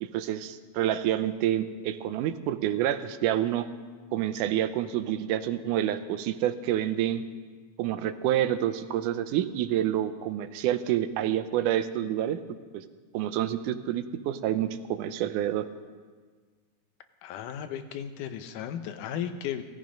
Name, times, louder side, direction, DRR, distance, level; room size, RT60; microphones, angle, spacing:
voice 1, 0.0-3.7 4.1-7.2 7.8-12.4 12.7-12.8 13.1-15.7, right 11 dB, 90° right, 11 dB, 2.2 m, -28 dB
voice 2, 17.2-19.6, left 9 dB, 85° left, 9 dB, 2.4 m, -35 dB
17.0 x 14.0 x 5.2 m, 1.5 s
omnidirectional pair, 3.6 m